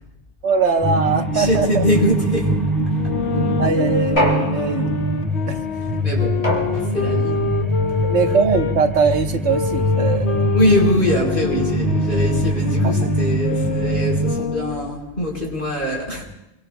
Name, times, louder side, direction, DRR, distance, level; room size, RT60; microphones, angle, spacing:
voice 1, 0.4-1.8 3.3-4.9 5.4-5.6 7.3-7.4 8.0-10.5 12.8-12.9, right 5 dB, 85° right, 5 dB, 1.4 m, -21 dB
sound 1, 0.8-14.3, equal, ahead, 2.7 m, -23 dB
voice 2, 1.2-2.6 3.0-3.1 6.0-6.5 6.7-7.5 7.9-8.0 10.5-16.2, equal, 50° left, -1 dB, 4.7 m, -22 dB
sound 2, 2.9-8.8 9.5-14.9, left 7 dB, 75° left, 1.0 m, -27 dB
sound 3, 4.2-5.2 6.4-7.3, equal, 30° left, 3.5 m, -24 dB
26.5 x 24.0 x 2.2 m, 0.90 s
omnidirectional pair, 1.1 m